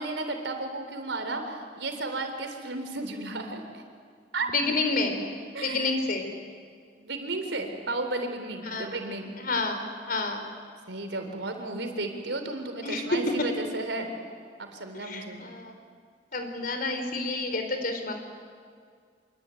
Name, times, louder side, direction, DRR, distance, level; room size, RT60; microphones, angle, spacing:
voice 1, 0.0-3.8 4.3-4.5 5.5-5.9 7.0-9.3 10.9-14.1 14.6-15.4, right 2 dB, 85° right, 5 dB, 3.8 m, -33 dB
voice 2, 4.5-5.2 5.6-6.3 8.6-9.0 9.4-10.4 12.8-13.2 14.9-15.8 16.3-18.1, left 3 dB, 55° left, 6 dB, 4.0 m, -29 dB
26.5 x 23.0 x 9.2 m, 2.1 s
head